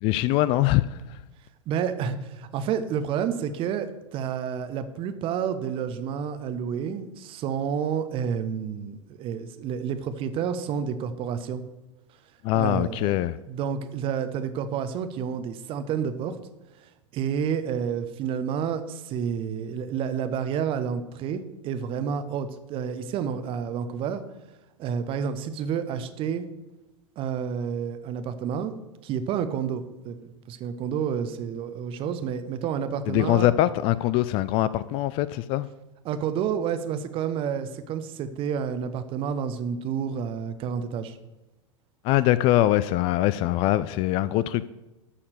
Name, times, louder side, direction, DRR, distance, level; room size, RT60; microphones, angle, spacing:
voice 1, 0.0-1.2 12.4-13.4 33.1-35.7 42.0-44.7, left 14 dB, 35° left, 16 dB, 0.3 m, -23 dB
voice 2, 1.7-11.6 12.5-13.2 13.5-16.4 16.8-24.2 24.8-26.4 27.2-28.7 29.0-33.5 36.0-41.2, right 7 dB, 35° right, 11 dB, 0.9 m, -30 dB
12.5 x 4.3 x 6.7 m, 1.1 s
figure-of-eight pair, 90°, 16 cm